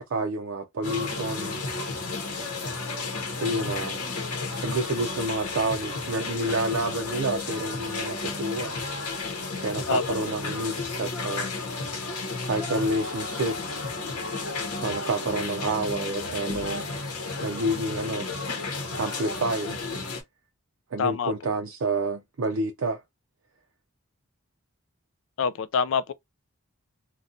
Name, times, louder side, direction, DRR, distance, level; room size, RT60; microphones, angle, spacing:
voice 1, 0.1-1.6 3.4-4.0 4.6-8.8 9.6-11.5 12.4-13.6 14.8-16.9 17.4-18.3 18.9-19.8 20.9-23.0, right 2 dB, 60° right, 0.4 m, -29 dB
sound 1, 0.8-20.2, left 3 dB, 90° left, 0.9 m, -32 dB
voice 2, 21.0-21.3 25.4-26.1, left 6 dB, 60° left, 0.3 m, -25 dB
2.6 x 2.2 x 3.5 m
head